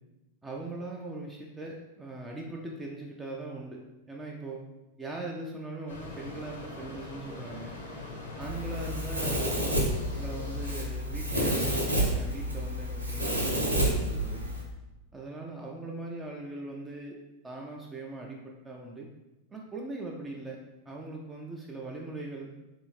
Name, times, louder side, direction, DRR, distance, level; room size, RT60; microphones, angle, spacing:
voice 1, 0.4-3.8 4.1-4.6 5.0-7.7 8.4-9.7 10.2-14.4 15.1-17.2 17.4-19.1 19.5-20.6 20.9-22.5, right 2 dB, 10° right, -2 dB, 0.4 m, -40 dB
sound 1, 5.9-10.9, left 2 dB, 70° left, 0.6 m, -43 dB
Domestic sounds home sounds, 8.4-14.6, equal, 85° right, 0.6 m, -29 dB
3.3 x 2.7 x 2.9 m, 1.0 s
figure-of-eight pair, 90°, 0 cm